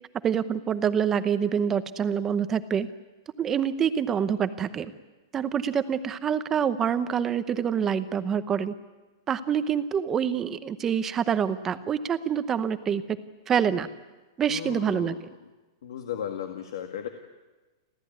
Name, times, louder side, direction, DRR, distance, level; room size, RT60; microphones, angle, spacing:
voice 1, 0.2-2.9 3.4-4.9 5.3-8.7 9.3-13.0 13.5-13.9 14.4-15.1, right 8 dB, 15° right, 12 dB, 0.8 m, -26 dB
voice 2, 14.5-15.3 15.8-17.1, left 9 dB, 70° left, 5 dB, 2.1 m, -35 dB
30.0 x 13.5 x 9.5 m, 1.2 s
supercardioid pair, 170°, 2 cm